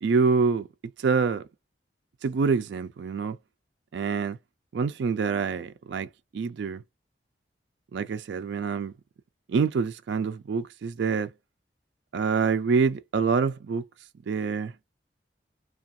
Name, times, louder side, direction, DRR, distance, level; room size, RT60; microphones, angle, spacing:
voice 1, 0.0-0.7 1.0-1.4 2.2-3.4 3.9-4.4 4.7-6.1 6.3-6.8 7.9-8.9 9.5-11.3 12.1-13.8 14.3-14.7, right 5 dB, 80° right, 0.4 m, -26 dB
2.4 x 2.3 x 2.6 m
head